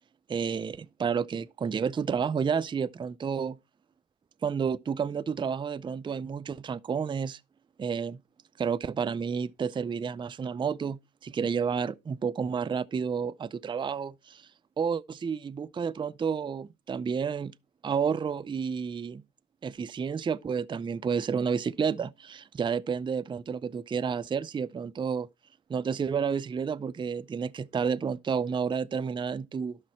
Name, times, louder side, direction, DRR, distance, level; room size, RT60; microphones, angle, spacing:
voice 1, 0.3-3.6 4.4-7.4 7.8-8.2 8.6-14.5 14.8-17.5 17.8-19.2 19.6-25.3 25.7-29.8, right 6 dB, 25° right, 0.5 m, -30 dB
11.5 x 6.3 x 4.3 m
cardioid pair, 100°, 19 cm